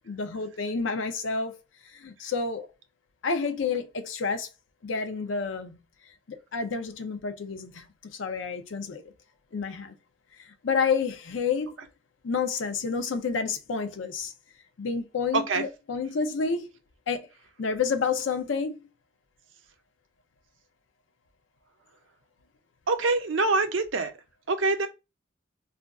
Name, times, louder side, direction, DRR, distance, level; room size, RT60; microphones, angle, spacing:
voice 1, 0.1-1.6 1.8-2.7 3.2-4.5 4.8-5.8 6.3-7.9 8.1-9.0 9.5-10.0 10.5-11.8 12.2-14.3 14.8-16.7 17.1-17.3 17.6-18.8, left 5 dB, 70° left, 0.5 m, -29 dB
voice 2, 15.3-15.6 22.9-24.1 24.5-24.9, right 3 dB, 75° right, 0.6 m, -25 dB
2.5 x 2.3 x 3.4 m
head